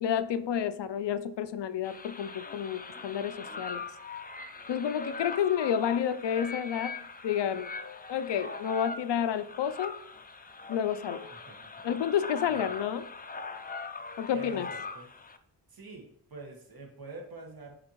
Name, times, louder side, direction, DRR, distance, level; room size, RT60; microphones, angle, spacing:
voice 1, 0.0-3.8 4.7-7.0 7.2-7.7 8.1-10.0 10.7-11.3 11.8-13.1 14.2-14.7, left 9 dB, 80° left, 0.5 m, -30 dB
sound 1, 1.8-15.4, left 3 dB, 20° left, 0.4 m, -41 dB
voice 2, 11.3-11.7 12.4-12.7 14.3-15.1 15.7-17.7, right 3 dB, 55° right, 1.5 m, -46 dB
7.6 x 4.3 x 3.0 m
wide cardioid pair, 100°, 42 cm